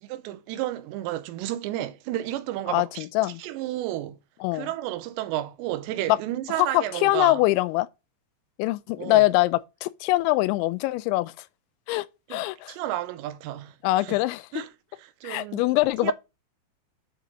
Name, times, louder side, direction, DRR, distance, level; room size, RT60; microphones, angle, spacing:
voice 1, 0.0-3.1 3.4-4.2 4.5-7.4 9.0-9.3 12.3-14.2 14.5-14.7 15.0-15.6 16.0-16.1, right 14 dB, 85° right, 2.9 m, -32 dB
voice 2, 2.7-3.4 4.4-4.7 6.1-6.2 6.6-7.9 8.6-11.3 11.9-12.1 12.3-12.7 13.8-14.5 15.2-16.1, left 18 dB, 90° left, 2.9 m, -23 dB
8.2 x 3.8 x 6.1 m
omnidirectional pair, 5.2 m